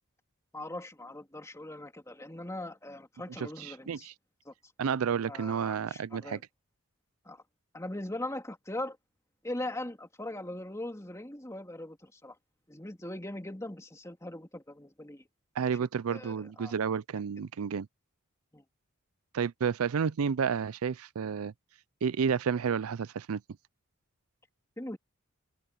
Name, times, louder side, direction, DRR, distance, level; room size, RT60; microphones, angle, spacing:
voice 1, 0.5-4.1 4.4-4.5 5.3-6.4 7.2-7.4 7.7-9.0 9.4-12.4 12.7-15.2 16.1-16.7 18.5-18.6 24.8-25.0, left 1 dB, 15° left, 2.8 m, -40 dB
voice 2, 3.4-4.1 4.8-6.4 15.6-17.9 19.3-21.5 22.0-23.4, right 6 dB, 85° right, 0.5 m, -31 dB
open air
head